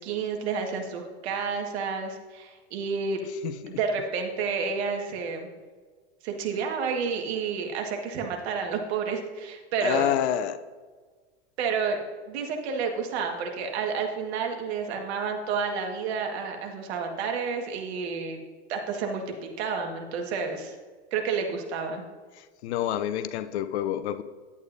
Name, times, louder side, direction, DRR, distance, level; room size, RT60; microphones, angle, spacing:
voice 1, 0.0-3.2 3.7-5.5 6.2-10.1 11.6-12.0 12.3-18.4 18.7-20.8 21.1-22.0, right 5 dB, 65° right, 3 dB, 1.7 m, -30 dB
voice 2, 3.4-3.8 9.8-10.6 22.4-24.2, left 11 dB, 70° left, 12 dB, 0.7 m, -28 dB
10.5 x 8.5 x 2.6 m, 1.5 s
hypercardioid pair, 110°, 34 cm